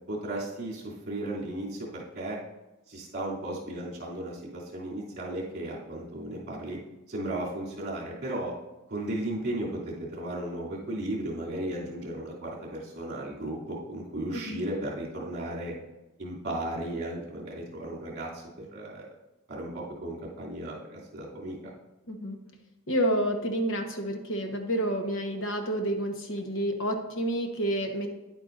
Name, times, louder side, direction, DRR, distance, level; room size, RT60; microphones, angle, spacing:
voice 1, 0.1-2.4 2.9-6.8 7.1-8.5 8.9-15.7 16.2-19.1 19.5-21.6, right 1 dB, 50° right, -5 dB, 2.9 m, -35 dB
voice 2, 22.1-22.4 22.9-28.1, right 1 dB, 65° left, 4 dB, 1.2 m, -29 dB
10.5 x 9.0 x 2.6 m, 1.0 s
head